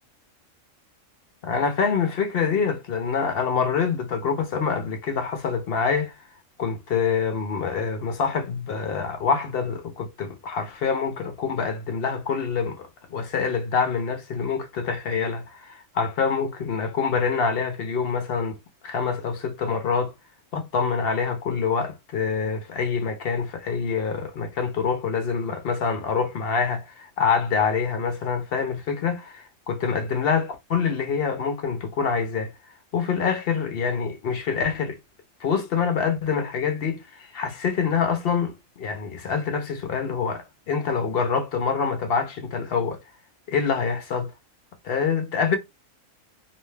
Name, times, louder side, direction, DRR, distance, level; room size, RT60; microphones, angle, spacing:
voice 1, 1.4-6.1 6.6-18.6 18.8-20.1 20.5-32.5 32.9-35.0 35.4-43.0 43.5-44.3 44.8-45.6, left 6 dB, 60° left, 0.7 m, -26 dB
2.7 x 2.2 x 3.1 m
omnidirectional pair, 1.4 m